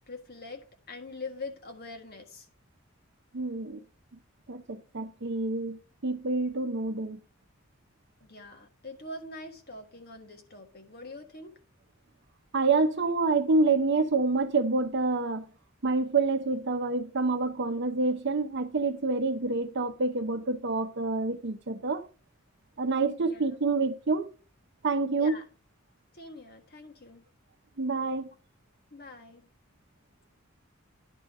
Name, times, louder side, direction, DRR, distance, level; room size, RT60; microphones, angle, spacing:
voice 1, 0.1-2.5 8.2-11.6 23.3-23.6 25.2-25.4 26.1-27.2 28.9-29.5, left 2 dB, 50° left, 1.6 m, -43 dB
voice 2, 3.3-3.8 4.5-7.2 12.5-15.5 15.8-22.0 22.8-24.3 24.8-25.4 27.8-28.3, right 3 dB, 60° right, 0.7 m, -27 dB
10.5 x 3.9 x 6.0 m
head